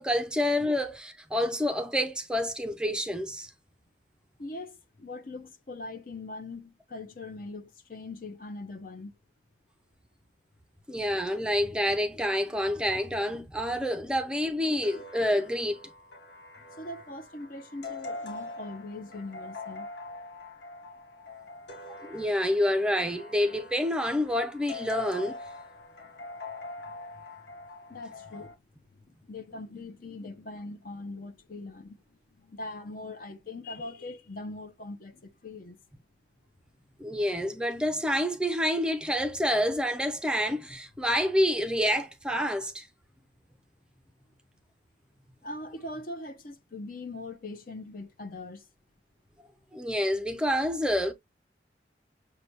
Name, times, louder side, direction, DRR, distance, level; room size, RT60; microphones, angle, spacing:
voice 1, 0.0-3.5 10.9-15.8 22.1-25.4 37.0-42.9 49.7-51.1, equal, 5° right, 0.5 m, -28 dB
voice 2, 4.4-9.1 12.3-12.4 16.8-19.9 26.8-26.9 27.9-28.6 28.9-32.0 32.4-35.8 45.4-48.7, left 2 dB, 50° left, 0.7 m, -41 dB
sound 1, 14.8-28.5, left 2 dB, 80° left, 1.2 m, -43 dB
6.6 x 2.2 x 2.9 m
head